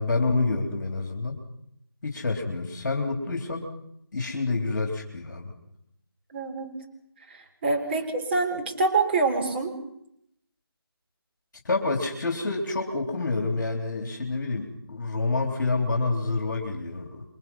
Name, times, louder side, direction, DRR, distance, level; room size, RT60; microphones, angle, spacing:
voice 1, 0.0-1.4 2.0-3.7 4.1-5.5 11.6-17.2, left 3 dB, 45° left, 2 dB, 3.7 m, -28 dB
voice 2, 6.3-6.7 7.3-9.7, right 3 dB, 25° right, 2 dB, 3.8 m, -26 dB
28.0 x 23.5 x 5.7 m, 0.75 s
figure-of-eight pair, 160°, 13 cm